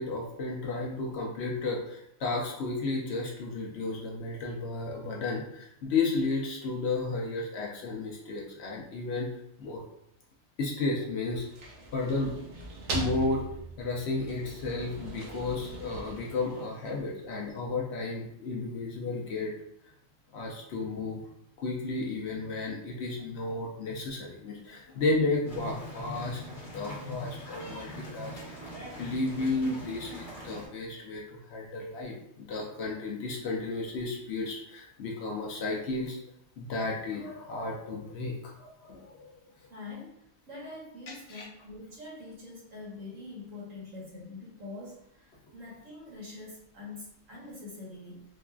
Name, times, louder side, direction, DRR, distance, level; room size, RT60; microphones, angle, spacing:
voice 1, 0.0-9.3 9.6-9.8 10.6-11.5 11.9-12.4 12.9-13.5 13.8-19.5 20.3-21.2 21.6-36.2 36.6-39.3 41.3-41.4, left 3 dB, 65° left, -1 dB, 0.7 m, -33 dB
sound 1, 11.2-17.2, right 2 dB, 65° right, 0.9 m, -40 dB
sound 2, 25.5-30.7, right 1 dB, 40° left, 1.0 m, -44 dB
voice 2, 39.7-40.1 40.5-48.2, left 3 dB, 80° right, -6 dB, 1.6 m, -44 dB
3.7 x 2.4 x 2.3 m, 0.76 s
omnidirectional pair, 1.4 m